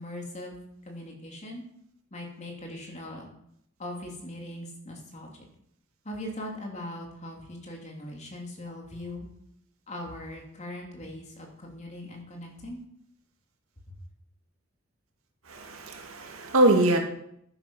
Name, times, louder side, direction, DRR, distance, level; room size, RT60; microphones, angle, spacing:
voice 1, 0.0-1.6 2.1-3.3 3.8-5.3 6.0-9.3 9.9-12.8 13.9-14.0, left 1 dB, 35° left, 0 dB, 2.9 m, -40 dB
voice 2, 15.5-17.0, right 2 dB, 85° right, 3 dB, 2.0 m, -23 dB
11.0 x 9.7 x 5.6 m, 0.74 s
head